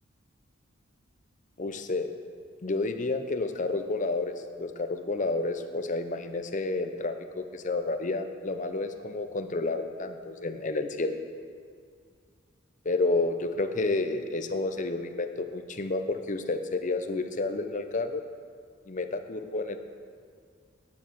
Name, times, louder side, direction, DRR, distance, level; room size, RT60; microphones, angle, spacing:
voice 1, 1.6-2.1 2.6-11.1 12.8-18.2 18.9-19.8, left 3 dB, 40° left, 7 dB, 0.7 m, -30 dB
9.6 x 7.2 x 5.9 m, 2.1 s
head